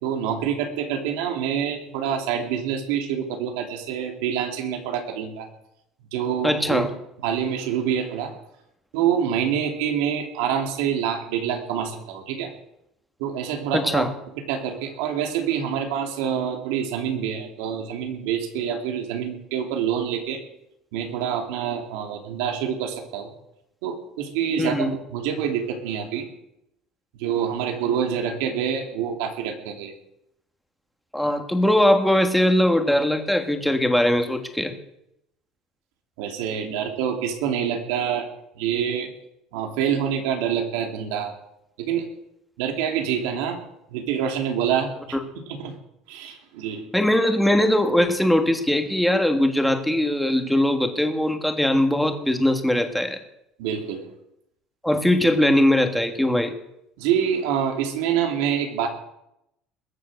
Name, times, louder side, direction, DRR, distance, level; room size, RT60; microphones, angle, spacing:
voice 1, 0.0-5.5 6.1-6.9 7.2-8.3 8.9-12.5 13.2-14.1 14.5-20.4 20.9-23.3 23.8-26.3 27.2-29.9 36.2-38.3 38.6-39.1 39.5-41.3 41.8-42.1 42.6-43.6 43.9-45.2 45.5-45.8 46.1-46.8 53.6-54.0 57.0-58.9, right 8 dB, 90° right, 3 dB, 2.7 m, -26 dB
voice 2, 6.4-6.9 13.7-14.1 24.6-24.9 31.1-34.7 45.1-45.2 46.9-53.2 54.8-56.5, left 1 dB, ahead, 5 dB, 1.5 m, -20 dB
21.0 x 7.5 x 6.5 m, 0.82 s
cardioid pair, 140°, 0 cm